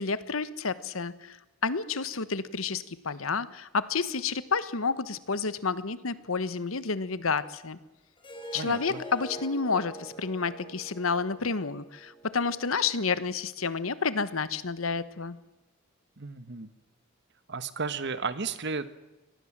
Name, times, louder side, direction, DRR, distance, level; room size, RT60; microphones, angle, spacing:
voice 1, 0.0-1.4 1.6-7.8 8.5-15.4, left 4 dB, 90° left, 15 dB, 1.2 m, -30 dB
Harp, 8.2-13.3, equal, 25° left, 4.2 m, -45 dB
voice 2, 8.5-9.0 16.2-16.7 17.5-18.9, right 4 dB, 60° right, 13 dB, 1.2 m, -34 dB
24.5 x 18.5 x 7.4 m, 1.0 s
head